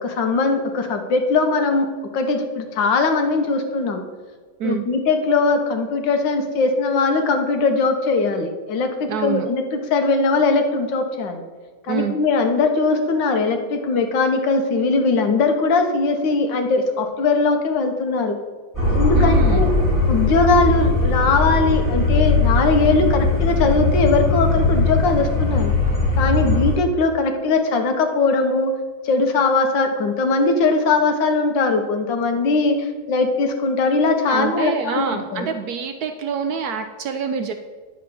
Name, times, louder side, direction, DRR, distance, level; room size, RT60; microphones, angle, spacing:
voice 1, 0.0-1.9 2.1-4.0 4.6-11.4 11.9-18.4 18.9-19.7 20.1-25.7 26.2-28.7 29.0-35.1 35.3-35.5, left 3 dB, 75° left, 5 dB, 1.6 m, -20 dB
voice 2, 9.1-9.5 11.9-12.2 19.1-19.7 34.3-37.5, right 6 dB, 70° right, 7 dB, 0.9 m, -26 dB
sound 1, 18.7-26.7, left 3 dB, 10° right, 3.3 m, -19 dB
9.9 x 4.5 x 6.8 m, 1.4 s
omnidirectional pair, 2.0 m